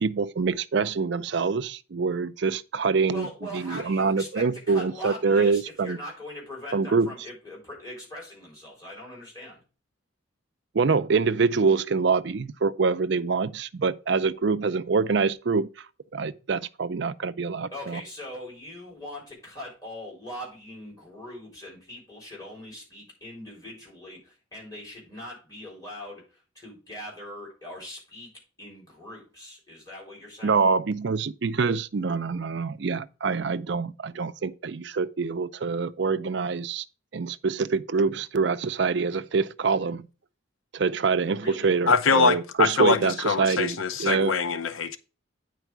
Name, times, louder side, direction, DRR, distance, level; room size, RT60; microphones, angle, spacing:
voice 1, 0.0-3.3 3.5-6.0 6.7-7.1 10.7-15.7 16.1-18.0 30.4-36.8 37.1-40.1 40.7-44.3, right 4 dB, 60° right, 0.5 m, -25 dB
voice 2, 3.1-9.6 17.7-28.3 28.6-30.6 41.4-41.8, left 1 dB, 20° left, 4.0 m, -41 dB
voice 3, 41.9-45.0, left 5 dB, 85° left, 0.7 m, -23 dB
9.1 x 4.6 x 4.6 m
head